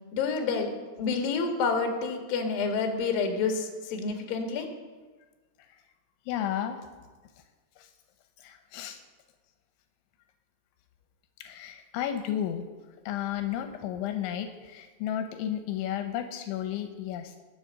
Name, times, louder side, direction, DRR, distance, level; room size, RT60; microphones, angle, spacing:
voice 1, 0.1-0.7 1.0-4.7, left 4 dB, 60° left, 4 dB, 3.1 m, -28 dB
voice 2, 6.3-6.8 7.8-7.9 8.4-9.0 11.4-12.7 13.1-17.4, left 10 dB, 85° left, 7 dB, 3.2 m, -33 dB
20.5 x 7.8 x 6.5 m, 1.3 s
omnidirectional pair, 5.3 m